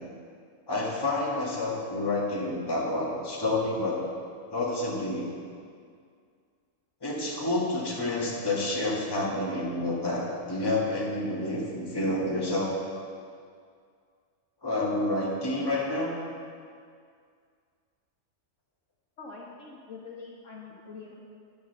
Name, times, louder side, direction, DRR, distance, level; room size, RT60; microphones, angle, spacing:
voice 1, 0.7-4.0 4.5-5.3 7.0-12.7 14.6-16.2, left 2 dB, 15° left, -5 dB, 1.7 m, -29 dB
voice 2, 19.2-21.1, left 4 dB, 60° left, -3 dB, 1.7 m, -44 dB
11.0 x 5.5 x 6.7 m, 2.2 s
omnidirectional pair, 1.5 m